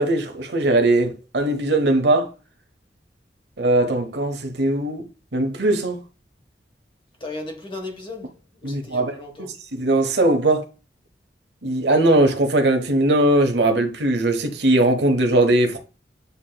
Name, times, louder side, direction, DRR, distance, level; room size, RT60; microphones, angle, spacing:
voice 1, 0.0-2.3 3.6-5.1 5.3-6.0 8.6-10.6 11.6-15.8, right 2 dB, 80° right, 0.9 m, -20 dB
voice 2, 7.2-9.5, left 2 dB, 30° left, 1.2 m, -36 dB
8.1 x 2.9 x 2.2 m
head